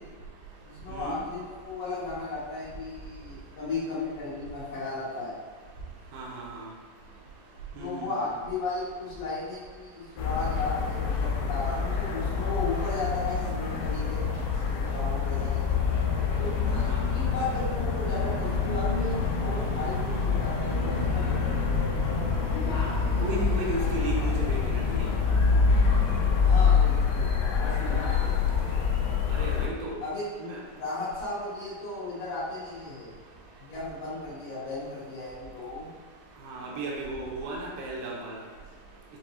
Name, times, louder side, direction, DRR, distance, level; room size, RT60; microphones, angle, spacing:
voice 1, 0.6-5.3 7.8-15.8 16.4-22.4 26.4-28.5 30.0-30.2 30.7-33.2 33.6-35.9, left 2 dB, 70° left, -9 dB, 2.7 m, -35 dB
voice 2, 6.1-6.6 7.8-8.1 16.7-17.0 22.3-22.4 23.2-25.0 29.3-30.0 30.4-30.6 36.5-38.4, right 2 dB, 80° right, -3 dB, 2.3 m, -34 dB
sound 1, 10.2-29.7, left 5 dB, 85° left, 1.8 m, -26 dB
6.4 x 2.6 x 2.8 m, 1.5 s
omnidirectional pair, 4.4 m